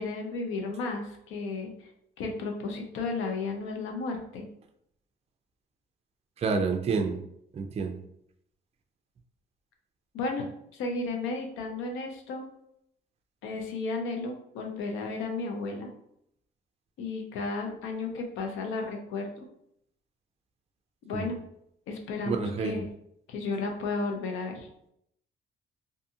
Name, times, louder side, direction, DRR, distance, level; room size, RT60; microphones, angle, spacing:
voice 1, 0.0-1.9 2.2-4.5 10.1-12.5 13.4-15.9 17.0-19.4 21.0-21.4 21.9-22.9 23.3-24.7, left 3 dB, 90° left, 2 dB, 0.6 m, -33 dB
voice 2, 6.4-7.2 7.6-8.0 21.1-21.3 22.3-22.8, right 5 dB, 30° right, 6 dB, 0.3 m, -28 dB
2.6 x 2.4 x 2.7 m, 0.75 s
cardioid pair, 90°, 20 cm